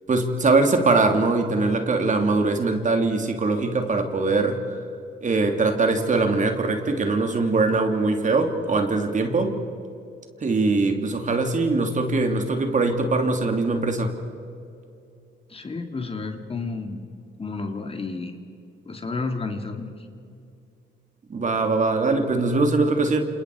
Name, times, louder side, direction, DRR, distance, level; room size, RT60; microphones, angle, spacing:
voice 1, 0.1-4.8 5.2-9.6 10.4-14.1 21.3-23.2, right 3 dB, 40° right, 4 dB, 3.1 m, -22 dB
voice 2, 15.5-17.0 17.4-18.4 18.9-20.1, left 3 dB, 30° left, 5 dB, 2.4 m, -31 dB
28.5 x 28.0 x 4.9 m, 2.6 s
cardioid pair, 90°, 20 cm